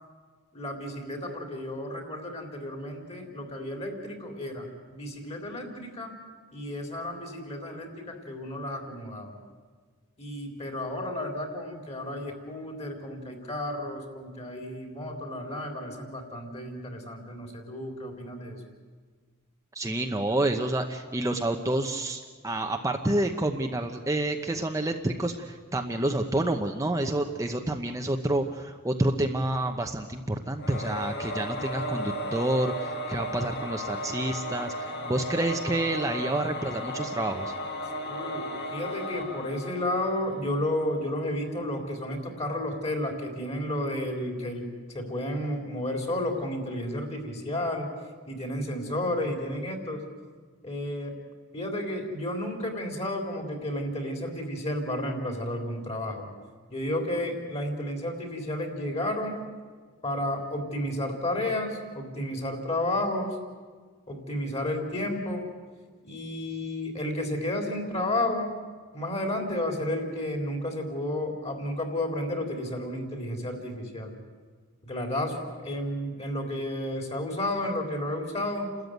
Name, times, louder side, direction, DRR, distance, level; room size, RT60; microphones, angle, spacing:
voice 1, 0.5-6.2 6.5-9.3 10.2-18.6 38.0-44.6 44.9-47.9 48.3-50.0 50.6-51.1 51.5-56.3 56.7-59.5 60.0-63.4 64.1-65.5 66.0-68.6 68.9-74.1 74.8-78.7, left 1 dB, 30° left, 3 dB, 3.7 m, -32 dB
voice 2, 19.7-37.5, right 1 dB, 15° right, 3 dB, 0.9 m, -28 dB
Singing / Musical instrument, 30.6-40.6, equal, 50° left, 2.1 m, -35 dB
29.5 x 13.5 x 9.3 m, 1.5 s
head